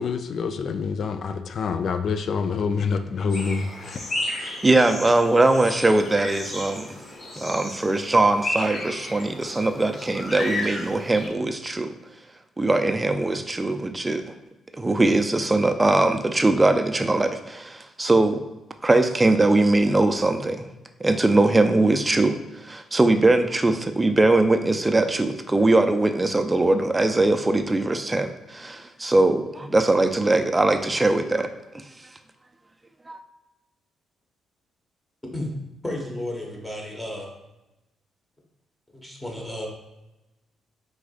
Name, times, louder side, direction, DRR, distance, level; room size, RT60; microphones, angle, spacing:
voice 1, 0.0-4.0, left 5 dB, 55° left, 9 dB, 0.4 m, -26 dB
sound 1, 3.3-11.3, left 1 dB, 40° left, 1.4 m, -33 dB
voice 2, 4.6-7.0 7.4-11.9 12.6-14.3 14.8-18.4 18.8-20.7 21.0-31.8 33.1-33.2, right 2 dB, 20° right, 7 dB, 0.4 m, -21 dB
voice 3, 35.8-37.3 38.9-39.7, left 1 dB, 10° left, -1 dB, 1.2 m, -32 dB
4.7 x 3.9 x 2.4 m, 0.97 s
cardioid pair, 90°, 0 cm